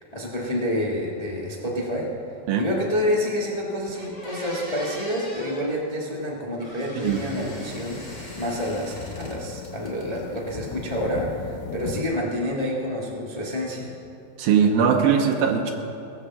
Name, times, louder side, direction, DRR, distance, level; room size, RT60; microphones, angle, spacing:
voice 1, 0.1-2.1 2.6-13.9, left 1 dB, 45° left, -4 dB, 0.5 m, -28 dB
sound 1, 3.5-3.6 3.9-5.7 6.6-9.4 9.6-10.4, equal, 10° left, 2.8 m, -40 dB
sound 2, 7.0-12.0, left 7 dB, 85° left, 2.7 m, -38 dB
voice 2, 14.4-15.7, right 7 dB, 85° right, 2 dB, 2.7 m, -20 dB
19.0 x 8.1 x 7.3 m, 2.8 s
omnidirectional pair, 4.1 m